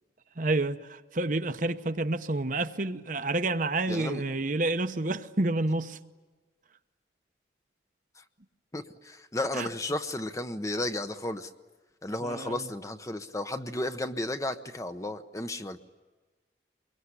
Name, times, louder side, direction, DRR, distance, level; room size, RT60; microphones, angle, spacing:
voice 1, 0.4-6.0 9.5-9.7 12.2-12.7, right 2 dB, 45° right, 0.9 m, -29 dB
voice 2, 3.9-4.2 8.2-8.3 8.7-11.5 12.0-15.8, left 1 dB, 15° left, 0.9 m, -33 dB
24.5 x 22.5 x 9.9 m
head